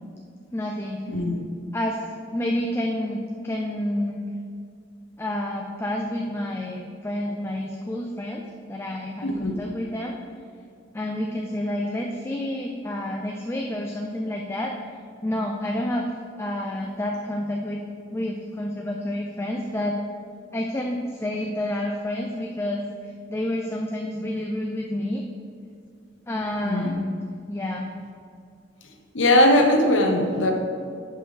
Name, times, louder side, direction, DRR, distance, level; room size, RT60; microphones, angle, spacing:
voice 1, 0.5-1.0 1.7-2.0 2.3-4.3 5.2-10.2 10.9-14.9 15.2-16.1 16.4-17.8 18.1-20.0 20.5-22.8 23.3-25.2 26.3-27.2 27.5-27.9, left 1 dB, 15° left, 1 dB, 0.4 m, -29 dB
voice 2, 1.1-1.5 9.2-9.6 26.6-27.0 29.1-30.5, left 1 dB, 80° left, 3 dB, 1.0 m, -20 dB
10.5 x 5.5 x 3.3 m, 2.4 s
head